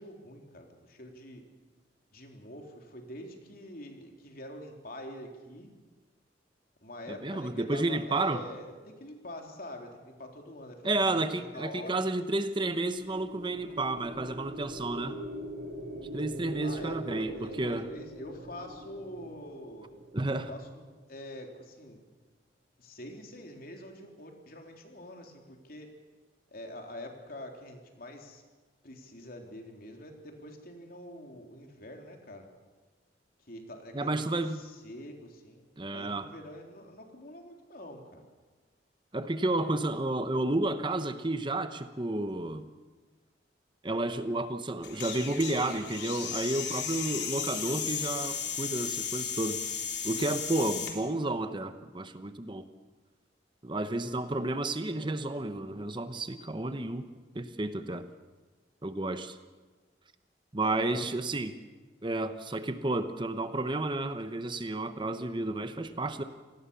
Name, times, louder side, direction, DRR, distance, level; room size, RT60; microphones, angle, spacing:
voice 1, 0.0-1.4 2.1-5.7 6.8-12.0 16.6-20.0 20.3-22.0 22.8-25.9 26.5-28.4 28.8-32.5 33.5-38.2 60.6-61.0, left 1 dB, 55° left, 3 dB, 3.6 m, -45 dB
voice 2, 7.1-8.4 10.8-15.2 16.1-17.9 20.1-20.5 33.9-34.6 35.8-36.3 39.1-42.7 43.8-49.6 50.0-52.7 53.6-57.1 57.3-58.1 58.8-59.4 60.5-61.5 62.0-66.2, right 2 dB, 25° right, 10 dB, 0.9 m, -31 dB
sound 1, 12.6-20.9, right 1 dB, 55° right, 6.2 m, -43 dB
sound 2, 44.8-50.9, left 7 dB, 70° left, 3.6 m, -35 dB
27.0 x 18.5 x 7.0 m, 1.3 s
head